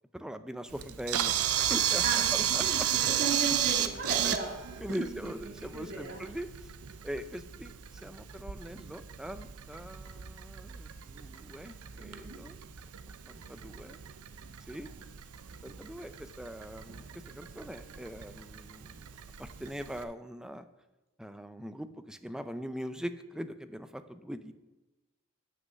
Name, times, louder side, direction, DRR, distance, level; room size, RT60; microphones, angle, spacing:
voice 1, 0.1-2.6 4.2-4.4 4.8-6.5 7.0-12.6 13.3-14.0 14.7-14.9 15.6-17.1 17.3-19.1 19.4-20.6 21.2-24.5, equal, 5° right, 10 dB, 0.4 m, -41 dB
Camera, 0.7-20.0, right 10 dB, 75° right, 0.6 m, -34 dB
voice 2, 2.0-6.2 12.0-12.4, right 3 dB, 45° right, 0 dB, 2.2 m, -37 dB
7.7 x 6.4 x 6.3 m, 1.1 s
head